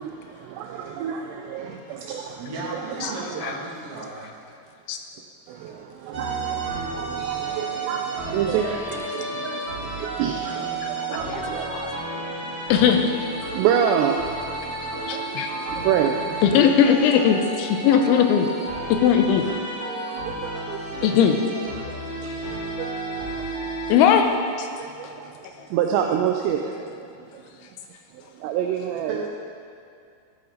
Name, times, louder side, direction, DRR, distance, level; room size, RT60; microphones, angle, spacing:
voice 1, 0.0-2.4 2.7-3.3 4.0-4.1 5.5-12.7 13.3-16.2 16.5-16.7 18.7-18.9 20.1-21.1 21.8-23.9 24.5-26.6 27.3-27.4 28.1-29.3, right 8 dB, 85° right, 3 dB, 2.5 m, -29 dB
voice 2, 0.6-1.2 1.6-1.7 2.4-4.3 16.2-16.7 26.6-26.8 27.2-27.3 29.0-29.3, right 2 dB, 40° right, -7 dB, 2.5 m, -37 dB
sound 1, 6.1-23.9, right 2 dB, 20° right, 2.0 m, -32 dB
voice 3, 12.7-13.1 15.1-15.5 16.4-18.5 19.0-19.4 21.0-21.4 23.9-24.3 24.6-24.7, left 8 dB, 85° left, 5 dB, 3.1 m, -18 dB
13.5 x 8.6 x 3.9 m, 2.3 s
omnidirectional pair, 5.5 m